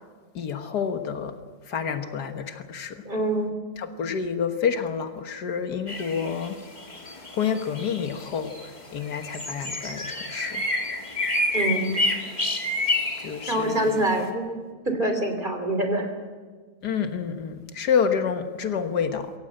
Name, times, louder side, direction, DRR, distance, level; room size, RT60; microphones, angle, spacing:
voice 1, 0.4-1.3 1.7-3.0 3.8-6.6 7.3-8.6 8.9-10.6 13.2-14.0 16.8-19.3, left 7 dB, 90° left, 6 dB, 1.9 m, -28 dB
voice 2, 3.0-3.5 11.5-12.1 13.5-14.6 14.8-16.1, right 1 dB, 30° right, 5 dB, 3.3 m, -25 dB
sound 1, 5.9-14.3, left 2 dB, 25° left, 2.1 m, -29 dB
23.5 x 17.5 x 7.8 m, 1.5 s
omnidirectional pair, 1.7 m